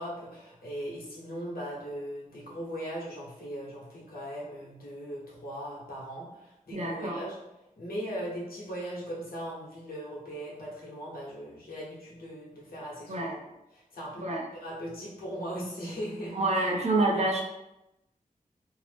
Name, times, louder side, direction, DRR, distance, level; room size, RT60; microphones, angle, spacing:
voice 1, 0.0-7.4 7.8-13.4 13.7-14.3 14.6-16.8 17.1-17.2, equal, 85° left, -6 dB, 1.0 m, -39 dB
voice 2, 6.7-7.2 13.1-13.3 14.2-14.4 16.3-17.4, right 2 dB, 50° right, -1 dB, 0.6 m, -27 dB
2.7 x 2.0 x 3.2 m, 0.91 s
wide cardioid pair, 85°, 15 cm